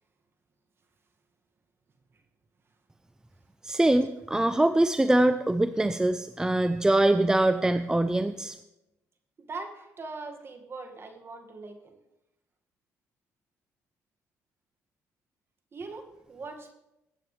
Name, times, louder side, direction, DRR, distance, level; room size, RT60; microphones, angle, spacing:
voice 1, 3.6-8.6, right 1 dB, 10° right, 10 dB, 0.5 m, -23 dB
voice 2, 9.4-12.0 15.7-16.0 16.3-16.7, right 3 dB, 40° right, 4 dB, 1.9 m, -41 dB
21.0 x 8.9 x 3.3 m, 0.90 s
cardioid pair, 85°, 6 cm